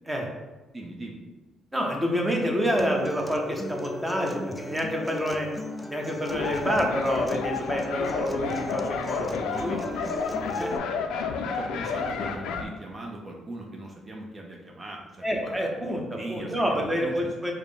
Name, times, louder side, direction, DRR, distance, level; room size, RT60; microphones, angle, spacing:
voice 1, 0.7-1.2 9.4-10.3 11.5-17.4, right 1 dB, 30° right, 0 dB, 0.6 m, -40 dB
voice 2, 1.7-5.5 5.9-9.8 10.6-10.7 15.2-16.0 16.3-17.5, equal, 10° right, 0 dB, 0.9 m, -28 dB
Acoustic guitar, 2.8-10.8, left 1 dB, 10° left, 0.4 m, -37 dB
sound 1, 6.3-12.6, left 5 dB, 80° left, 0.3 m, -30 dB
4.9 x 2.1 x 3.4 m, 1.2 s
supercardioid pair, 65°, 0 cm